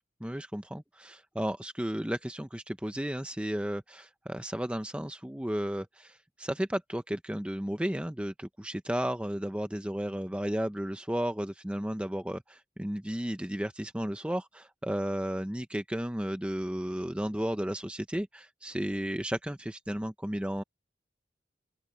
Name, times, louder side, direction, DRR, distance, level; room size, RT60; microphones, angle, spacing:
voice 1, 0.2-20.6, equal, 5° right, 0.6 m, -33 dB
open air
head